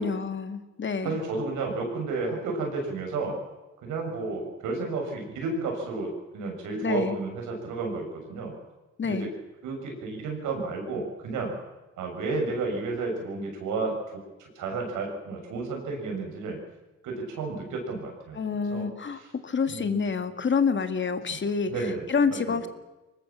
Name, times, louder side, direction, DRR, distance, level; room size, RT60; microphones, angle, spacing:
voice 1, 0.0-1.2 6.8-7.2 9.0-9.3 18.3-22.7, left 5 dB, 40° left, 9 dB, 2.1 m, -28 dB
voice 2, 1.0-3.4 3.8-8.5 9.0-9.3 9.6-11.5 12.0-16.6 17.0-18.4 18.7-18.9 19.1-19.3 19.7-20.1 21.3-21.4 21.7-22.1 22.5-22.6, right 3 dB, 85° right, 2 dB, 7.2 m, -32 dB
23.5 x 19.5 x 7.4 m, 1.1 s
cardioid pair, 90°, 30 cm